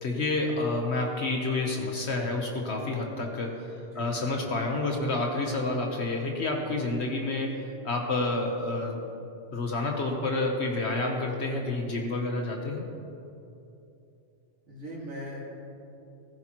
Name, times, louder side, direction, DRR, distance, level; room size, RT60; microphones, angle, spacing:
voice 1, 0.0-9.0 9.5-12.9, left 2 dB, 65° left, 1 dB, 1.3 m, -29 dB
voice 2, 3.9-4.2 14.7-15.4, equal, 80° right, -5 dB, 2.4 m, -40 dB
15.5 x 14.5 x 3.0 m, 2.8 s
omnidirectional pair, 1.2 m